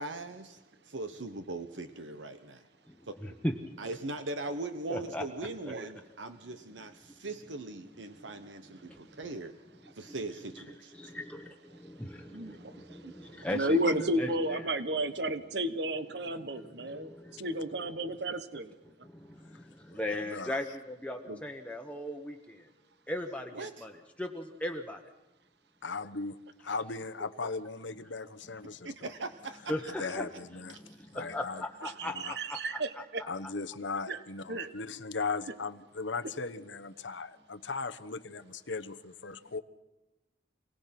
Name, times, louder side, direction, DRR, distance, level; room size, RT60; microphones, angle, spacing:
voice 1, 0.0-2.7 3.1-3.2 3.8-6.9 7.2-9.5 10.0-11.1 13.0-13.4 21.3-21.4 23.5-23.9 28.8-29.8 30.9-31.0, right 2 dB, 90° right, 9 dB, 1.1 m, -40 dB
voice 2, 3.2-3.8 4.9-5.2 8.8-9.1 10.9-14.7 16.5-17.9 18.9-22.7 23.1-23.9 24.2-25.0 29.7-30.3 30.7-33.0, left 1 dB, 5° left, 2 dB, 1.1 m, -38 dB
voice 3, 12.3-17.1 17.4-18.7 31.8-33.2 34.1-34.2 34.5-34.7, right 1 dB, 60° right, 11 dB, 1.2 m, -33 dB
voice 4, 19.9-20.5 25.8-29.1 30.0-30.8 31.1-31.6 32.0-32.3 33.3-39.6, left 4 dB, 90° left, 12 dB, 1.1 m, -38 dB
27.5 x 18.5 x 6.0 m, 1.0 s
head